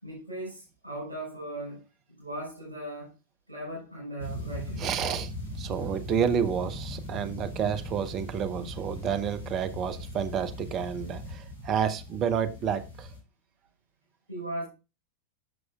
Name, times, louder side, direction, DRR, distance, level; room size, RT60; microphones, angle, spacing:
voice 1, 0.0-1.8 2.1-3.1 3.5-4.9 14.3-14.6, right 1 dB, 85° right, 4.3 m, -38 dB
sound 1, 4.2-13.2, left 1 dB, 75° left, 5.3 m, -39 dB
voice 2, 4.8-5.3 5.6-13.1, right 8 dB, 35° right, 0.8 m, -30 dB
11.0 x 6.3 x 2.4 m
figure-of-eight pair, 90°, 0 cm